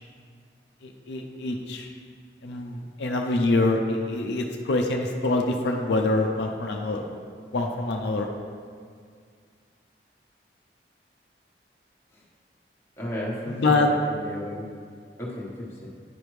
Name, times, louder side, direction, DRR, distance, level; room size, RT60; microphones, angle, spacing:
voice 1, 0.8-1.9 2.4-7.0 7.5-8.3 13.5-13.9, left 2 dB, 80° left, 2 dB, 0.5 m, -25 dB
voice 2, 13.0-14.6 15.2-15.9, left 1 dB, 15° left, -6 dB, 1.2 m, -33 dB
9.9 x 5.1 x 3.2 m, 2.1 s
head